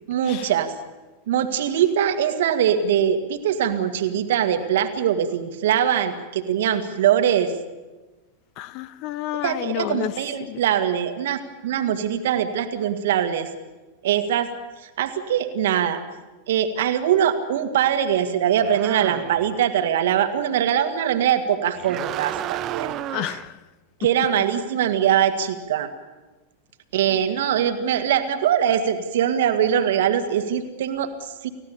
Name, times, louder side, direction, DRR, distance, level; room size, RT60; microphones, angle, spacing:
voice 1, 0.1-0.7 1.3-7.5 9.4-13.5 14.0-14.5 14.8-16.0 16.5-22.9 24.0-25.9 26.9-31.5, right 9 dB, 55° right, 7 dB, 2.1 m, -22 dB
voice 2, 8.6-10.1 10.4-10.6 23.1-23.6 27.1-27.2, left 13 dB, 40° left, 18 dB, 0.9 m, -30 dB
sound 1, 18.6-19.6 21.7-23.5, right 13 dB, 35° right, 0.9 m, -32 dB
30.0 x 16.0 x 7.1 m, 1.2 s
figure-of-eight pair, 90°, 0 cm